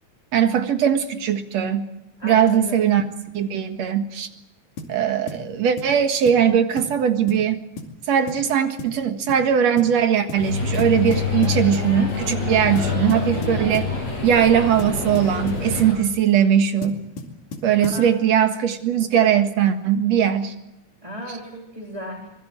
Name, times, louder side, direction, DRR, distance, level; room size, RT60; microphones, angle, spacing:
voice 1, 0.3-1.9 2.2-3.0 3.3-4.3 4.9-7.6 8.1-13.9 14.2-17.0 17.6-20.5, right 8 dB, 65° right, 7 dB, 2.8 m, -20 dB
voice 2, 2.2-2.9 17.8-18.2 21.0-22.3, equal, 10° right, -1 dB, 3.0 m, -34 dB
sound 1, 4.8-5.0 5.3-5.5 5.8-6.0 6.3-6.4 6.8-7.0 7.3-7.5 7.8-7.9 8.3-8.5 8.8-9.0 9.3-9.5 9.8-9.9 10.3-10.5 10.8-11.9 12.8-14.0 14.8-16.0 16.8-18.1, left 2 dB, 90° left, 4.0 m, -35 dB
sound 2, 10.4-15.9, left 4 dB, 60° left, 8.9 m, -26 dB
25.0 x 21.0 x 7.7 m, 0.86 s
omnidirectional pair, 3.4 m